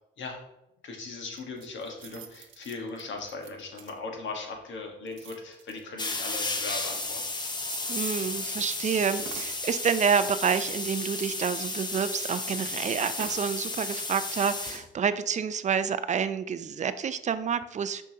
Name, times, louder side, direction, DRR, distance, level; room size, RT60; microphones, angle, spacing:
voice 1, 0.8-7.3, left 3 dB, 70° left, 2 dB, 1.5 m, -38 dB
sound 1, 1.3-4.2 5.0-6.4 7.0-8.2 8.7-9.6 11.0-12.3 12.6-12.7 12.9-13.6 14.5-14.8, right 9 dB, 80° right, 0.7 m, -47 dB
sound 2, 6.0-14.8, left 3 dB, 20° left, 0.8 m, -33 dB
voice 2, 7.9-18.0, right 7 dB, 35° right, 12 dB, 0.5 m, -28 dB
6.3 x 5.4 x 2.8 m, 0.86 s
cardioid pair, 90°, 20 cm